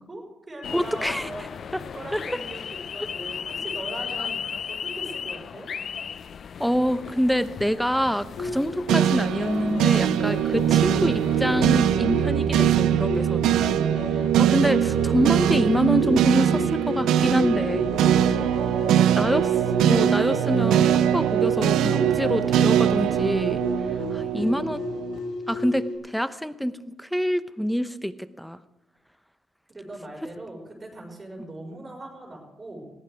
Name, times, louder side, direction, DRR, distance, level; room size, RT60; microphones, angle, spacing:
voice 1, 0.1-1.6 1.9-4.4 4.7-5.7 18.8-19.5 29.7-32.9, right 1 dB, 30° right, -1 dB, 5.3 m, -40 dB
sound 1, 0.6-11.7, left 7 dB, 55° left, 0.5 m, -36 dB
voice 2, 0.7-1.3 2.1-2.2 6.6-13.6 14.4-17.8 19.2-19.5 19.8-23.6 24.1-24.9 25.5-28.6, equal, ahead, 13 dB, 0.8 m, -26 dB
sound 2, 8.4-26.0, left 2 dB, 90° left, 4.8 m, -34 dB
sound 3, 8.9-25.2, right 10 dB, 85° right, 0.6 m, -22 dB
20.5 x 14.5 x 3.5 m, 0.98 s
cardioid pair, 75°, 0 cm